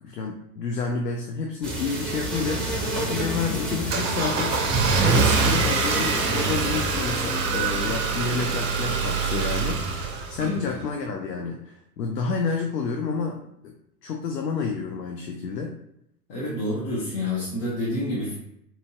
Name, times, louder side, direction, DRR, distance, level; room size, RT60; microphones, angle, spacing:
voice 1, 0.0-13.7 14.0-15.7, left 5 dB, 80° left, 2 dB, 0.6 m, -30 dB
sound 1, 1.6-9.2, right 1 dB, ahead, 0.8 m, -31 dB
Car / Engine starting, 2.6-10.8, right 4 dB, 35° right, 0.5 m, -25 dB
voice 2, 10.4-10.7 16.3-18.3, left 1 dB, 45° left, -5 dB, 1.0 m, -28 dB
4.3 x 2.6 x 2.3 m, 0.78 s
figure-of-eight pair, 95°, 48 cm